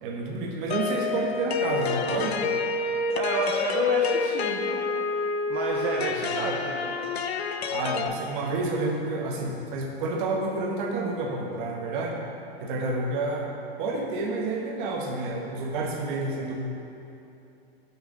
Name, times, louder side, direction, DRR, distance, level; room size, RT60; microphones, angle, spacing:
voice 1, 0.0-2.4 6.3-6.6 7.7-12.2 12.6-13.5 13.8-16.6, right 2 dB, 50° right, 0 dB, 1.1 m, -29 dB
sound 1, 0.7-8.1, left 5 dB, 85° left, 0.5 m, -28 dB
voice 2, 3.1-4.8 5.5-7.0, right 3 dB, 30° right, -2 dB, 0.6 m, -30 dB
5.8 x 3.5 x 5.5 m, 2.8 s
hypercardioid pair, 115°, 31 cm